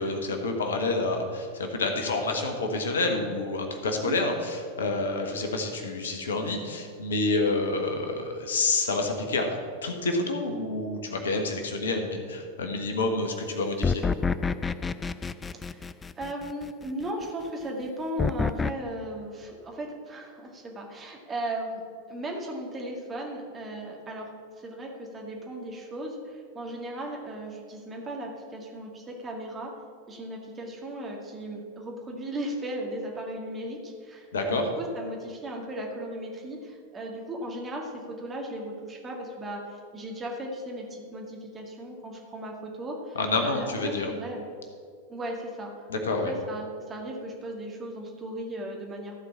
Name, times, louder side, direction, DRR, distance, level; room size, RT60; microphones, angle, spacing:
voice 1, 0.0-9.5 9.8-14.0 34.3-34.6 43.1-44.1 45.9-46.3, left 3 dB, 65° left, 4 dB, 1.3 m, -28 dB
sound 1, 13.8-16.7 18.2-18.7, left 5 dB, 15° left, 0.3 m, -28 dB
voice 2, 16.2-24.3 24.6-29.7 30.1-43.2 43.4-44.4 45.1-45.7 46.2-49.1, right 1 dB, 20° right, 0 dB, 2.0 m, -36 dB
14.5 x 4.8 x 7.3 m, 2.2 s
figure-of-eight pair, 90°, 0 cm